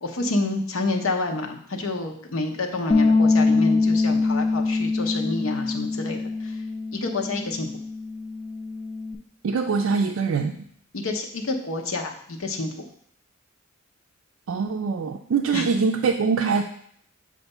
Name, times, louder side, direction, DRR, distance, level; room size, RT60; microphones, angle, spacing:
voice 1, 0.0-6.2 6.9-7.7 10.9-12.7 15.5-15.7, left 2 dB, 90° left, 3 dB, 0.8 m, -28 dB
Bass guitar, 2.9-9.2, left 3 dB, 15° left, 0.5 m, -23 dB
voice 2, 9.4-10.5 14.5-16.6, right 5 dB, 80° right, 3 dB, 0.4 m, -23 dB
6.9 x 2.5 x 5.4 m, 0.64 s
head